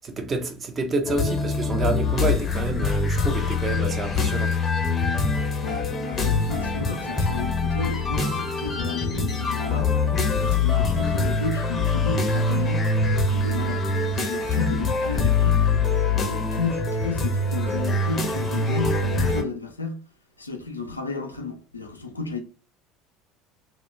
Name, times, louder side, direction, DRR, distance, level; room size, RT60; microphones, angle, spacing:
voice 1, 0.0-4.5, right 3 dB, 30° right, 0.7 m, -28 dB
sound 1, 1.1-19.4, left 3 dB, 30° left, 0.6 m, -24 dB
voice 2, 5.6-10.0 10.3-12.8 13.2-15.6 16.1-20.0 20.4-22.4, left 3 dB, 90° left, 0.4 m, -33 dB
2.3 x 2.2 x 3.1 m
figure-of-eight pair, 70°, 0 cm